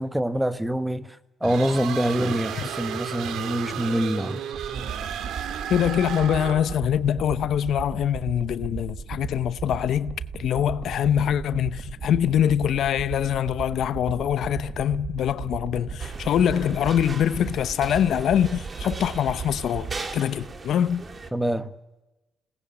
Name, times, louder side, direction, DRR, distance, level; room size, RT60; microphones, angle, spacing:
voice 1, 0.0-4.4 21.3-21.7, equal, 5° right, 1.3 m, -25 dB
sound 1, 1.4-6.8, right 8 dB, 80° right, 1.9 m, -33 dB
sound 2, 4.5-20.0, right 6 dB, 55° right, 1.7 m, -36 dB
voice 2, 5.7-21.0, left 10 dB, 70° left, 0.8 m, -24 dB
sound 3, 16.0-21.3, right 3 dB, 35° right, 2.5 m, -39 dB
28.0 x 19.5 x 8.9 m
cardioid pair, 90°, 0 cm